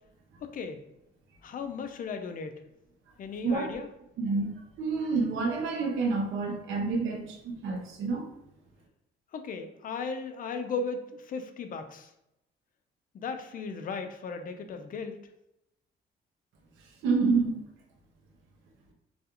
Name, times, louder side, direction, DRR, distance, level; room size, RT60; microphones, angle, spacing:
voice 1, 0.4-0.8 1.4-2.6 3.2-3.9 9.3-12.1 13.1-15.1, left 4 dB, 45° left, 7 dB, 0.4 m, -36 dB
voice 2, 4.2-4.5 4.8-8.3 17.0-17.6, right 4 dB, 75° right, 2 dB, 0.6 m, -28 dB
2.3 x 2.3 x 2.8 m, 0.84 s
cardioid pair, 90°, 20 cm